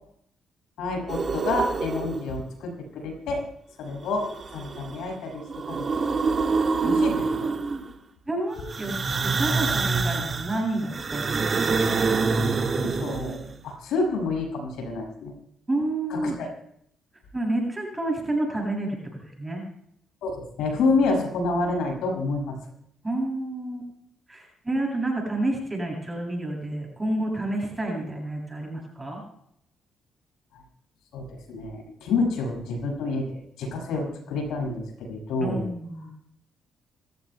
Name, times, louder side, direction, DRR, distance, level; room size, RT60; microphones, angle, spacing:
voice 1, 0.8-3.4 3.8-6.1 6.8-7.5 12.6-15.3 16.1-16.5 20.2-22.6 31.1-35.7, left 3 dB, 85° left, 1 dB, 6.6 m, -28 dB
sound 1, 1.1-2.3 4.1-5.0 5.3-7.9 8.7-13.5, right 4 dB, 40° right, 1.6 m, -26 dB
voice 2, 6.8-7.8 8.3-9.0 9.2-11.8 15.7-16.4 17.3-19.0 19.2-19.6 23.0-23.9 24.3-29.2 35.4-36.1, right 1 dB, 15° right, 0 dB, 7.7 m, -29 dB
27.0 x 15.5 x 2.3 m, 0.68 s
cardioid pair, 90°, 0 cm